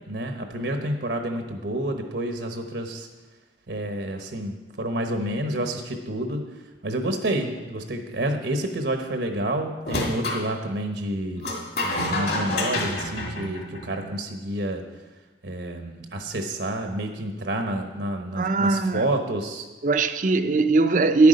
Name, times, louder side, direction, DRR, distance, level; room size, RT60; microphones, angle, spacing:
voice 1, 0.1-3.1 3.7-6.4 6.8-11.5 11.8-14.8 15.4-19.7, right 1 dB, 75° right, 1.1 m, -29 dB
sound 1, 9.8-10.4 11.4-14.1, left 1 dB, 60° left, 1.9 m, -28 dB
voice 2, 18.4-19.1 19.8-21.3, right 3 dB, 45° right, 0.5 m, -20 dB
10.5 x 8.2 x 5.1 m
head